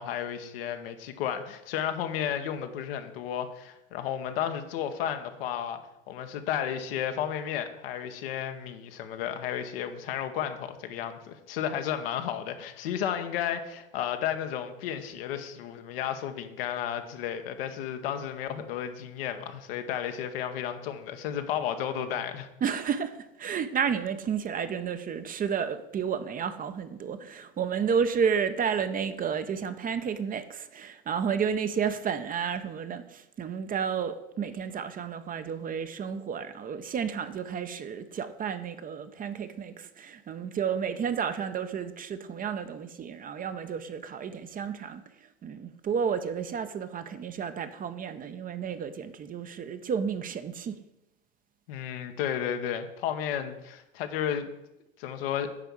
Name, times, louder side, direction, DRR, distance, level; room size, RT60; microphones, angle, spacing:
voice 1, 0.0-5.8 6.1-22.5 51.7-54.5 55.0-55.5, left 9 dB, 75° left, 7 dB, 1.1 m, -33 dB
voice 2, 22.6-45.0 45.4-50.8, right 7 dB, 30° right, 10 dB, 0.7 m, -31 dB
9.9 x 3.5 x 7.1 m, 0.89 s
hypercardioid pair, 95°, 29 cm